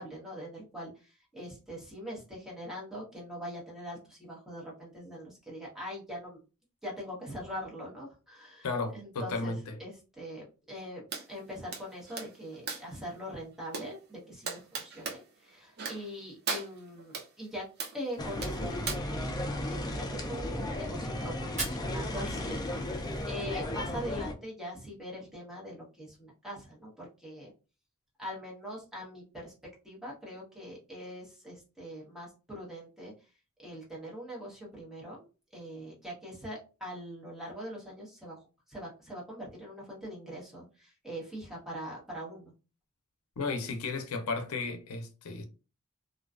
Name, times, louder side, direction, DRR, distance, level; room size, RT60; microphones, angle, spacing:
voice 1, 0.0-6.4 6.8-8.7 8.9-9.5 9.8-17.7 17.9-19.3 19.6-27.5 28.2-29.5 29.8-33.1 33.6-35.3 35.5-38.4 38.7-42.5, equal, ahead, 0.9 m, -42 dB
voice 2, 8.6-9.8 43.4-45.4, left 3 dB, 90° left, 0.5 m, -34 dB
sound 1, 11.1-11.3 11.7-13.0 13.7-13.9 14.5-15.2 15.8-16.1 16.5-17.3 17.8-18.0 18.4-18.9, right 4 dB, 50° right, 0.6 m, -37 dB
sound 2, 18.2-24.3, left 1 dB, 20° left, 0.3 m, -35 dB
Fire, 21.4-23.4, right 2 dB, 30° right, 1.4 m, -41 dB
2.4 x 2.2 x 2.3 m
head